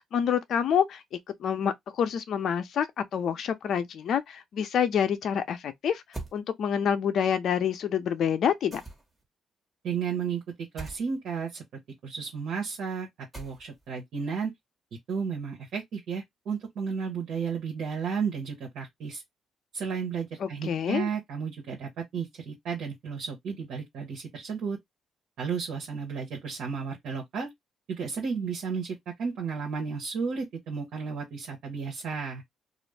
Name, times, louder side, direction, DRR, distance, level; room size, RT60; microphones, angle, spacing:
voice 1, 0.0-6.0 6.3-8.8 20.4-21.1, left 8 dB, 65° left, 0.6 m, -27 dB
sound 1, 6.1-6.4 8.7-9.2 10.8-11.0 13.3-13.9, right 2 dB, 15° right, 1.3 m, -40 dB
voice 2, 9.8-11.6 12.0-13.1 13.3-14.5 15.1-19.2 19.7-24.8 25.4-27.5 27.9-32.4, right 6 dB, 75° right, 0.9 m, -33 dB
2.5 x 2.0 x 3.3 m
cardioid pair, 90°, 0 cm